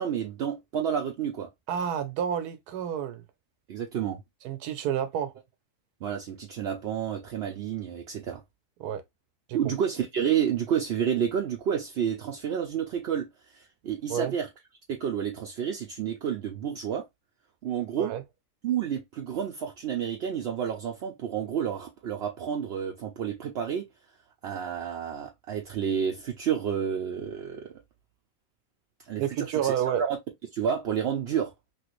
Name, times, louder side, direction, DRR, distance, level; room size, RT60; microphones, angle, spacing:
voice 1, 0.0-1.5 3.7-4.2 6.0-8.4 9.5-14.5 14.9-17.0 17.6-18.1 18.6-23.8 24.4-27.7 29.1-30.2 30.5-31.5, right 8 dB, 70° right, 0.6 m, -30 dB
voice 2, 1.7-3.2 4.4-5.3 8.8-9.0 9.5-9.6 14.1-14.3 18.0-18.2 29.2-30.0, right 9 dB, 85° right, 1.2 m, -29 dB
3.1 x 2.5 x 3.0 m
omnidirectional pair, 1.6 m